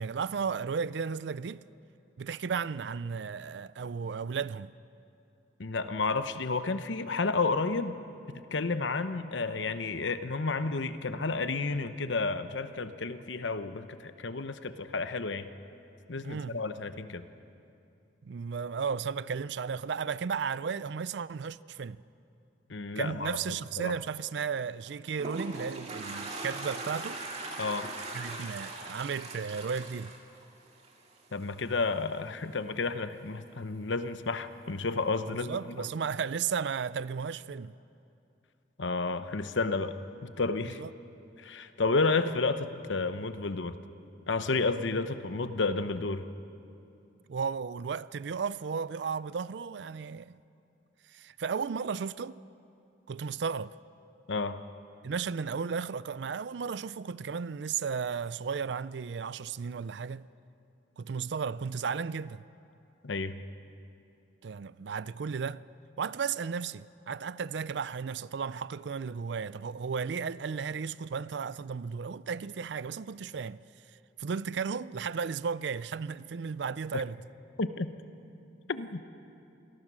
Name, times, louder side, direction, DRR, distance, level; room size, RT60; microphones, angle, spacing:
voice 1, 0.0-1.6 2.2-4.7 16.2-16.6 18.2-22.0 23.0-27.2 28.1-30.1 35.3-37.7 40.8-40.9 47.3-50.4 51.1-52.4 53.1-53.7 55.0-60.3 61.0-62.4 64.4-65.7 66.0-73.6 74.2-77.2, right 6 dB, 65° right, 0.4 m, -34 dB
voice 2, 5.6-7.9 8.5-15.5 16.1-17.2 22.7-23.3 23.8-23.9 27.6-27.9 31.3-35.9 38.8-39.9 40.2-40.8 41.4-43.8 44.3-46.2 54.3-54.6 63.0-63.4 76.9-77.0 77.6-77.9 78.7-79.0, left 3 dB, 80° left, 0.9 m, -31 dB
Toilet flush, 24.8-31.2, right 2 dB, 35° right, 2.1 m, -40 dB
26.5 x 18.0 x 6.2 m
head